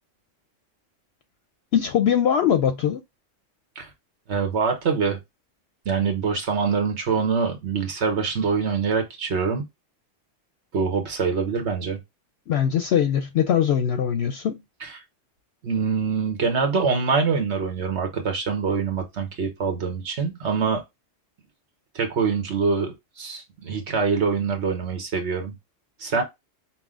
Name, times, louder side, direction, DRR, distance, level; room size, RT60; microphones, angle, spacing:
voice 1, 1.7-3.0 12.5-14.6, left 9 dB, 65° left, 0.7 m, -21 dB
voice 2, 4.3-5.2 5.8-9.6 10.7-12.0 14.8-15.0 15.6-20.8 21.9-25.5 26.0-26.2, right 5 dB, 60° right, 1.3 m, -24 dB
5.8 x 2.2 x 3.6 m
omnidirectional pair, 1.3 m